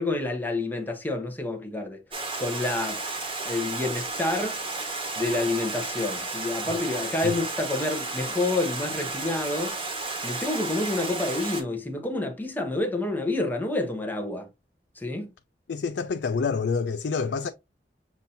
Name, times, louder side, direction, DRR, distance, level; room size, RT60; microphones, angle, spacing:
voice 1, 0.0-2.0 2.4-3.0 3.4-4.6 5.2-9.7 10.2-14.5 15.0-15.3, left 2 dB, 10° left, 0.8 m, -28 dB
Stream, 2.1-11.6, right 3 dB, 30° right, 1.1 m, -33 dB
voice 2, 15.7-17.5, left 5 dB, 70° left, 0.4 m, -27 dB
7.0 x 2.7 x 2.7 m
head